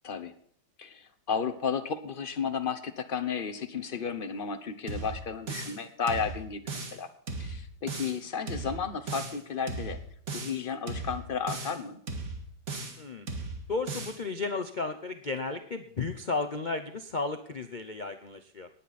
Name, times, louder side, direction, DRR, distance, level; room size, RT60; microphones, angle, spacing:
voice 1, 0.8-7.1 7.4-10.0 10.3-12.0, left 6 dB, 40° left, 8 dB, 0.8 m, -33 dB
sound 1, 4.9-5.8 6.1-7.0 7.3-8.2 8.5-9.4 9.7-10.6 10.9-11.8 12.1-13.0 13.3-14.2, right 3 dB, 50° right, 2.2 m, -37 dB
voice 2, 13.7-18.7, left 3 dB, 75° left, 7 dB, 0.4 m, -33 dB
18.5 x 9.0 x 4.2 m, 0.62 s
omnidirectional pair, 2.0 m